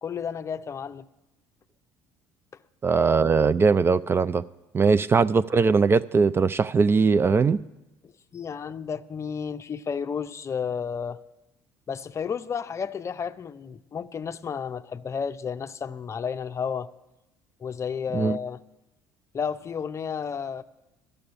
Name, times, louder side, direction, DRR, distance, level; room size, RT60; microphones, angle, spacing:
voice 1, 0.0-1.0 4.8-4.9 8.0-11.2 11.9-16.9 17.6-18.6 19.3-20.6, left 6 dB, 35° left, 0.6 m, -32 dB
voice 2, 2.8-4.4 4.7-7.6 18.1-18.4, right 5 dB, 25° right, 0.4 m, -20 dB
13.0 x 6.9 x 9.7 m
hypercardioid pair, 70°, 9 cm